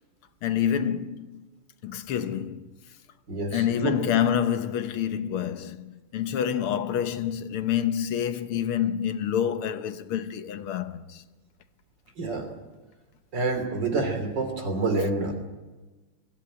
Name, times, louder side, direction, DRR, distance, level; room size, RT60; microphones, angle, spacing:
voice 1, 0.4-1.4 1.8-2.7 3.5-11.0, left 9 dB, 80° left, 1.9 m, -27 dB
voice 2, 3.3-4.0 12.2-12.5 13.3-15.4, right 3 dB, 55° right, 3.7 m, -27 dB
23.0 x 15.0 x 9.0 m
omnidirectional pair, 2.4 m